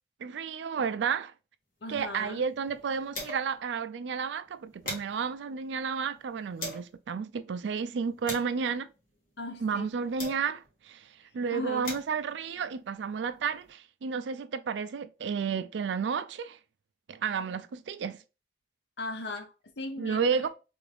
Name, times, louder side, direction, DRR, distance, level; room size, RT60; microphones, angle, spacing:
voice 1, 0.2-1.3 1.9-8.9 9.6-16.6 17.1-18.2 20.0-20.5, right 6 dB, 90° right, 0.4 m, -32 dB
voice 2, 1.8-2.4 9.4-9.9 11.5-11.9 19.0-20.5, left 2 dB, 80° left, 0.8 m, -38 dB
sound 1, 1.9-3.7 4.0-4.1 4.4-7.0 7.6-10.8 11.5-13.7, left 1 dB, 50° left, 1.3 m, -44 dB
3.5 x 2.6 x 3.3 m
head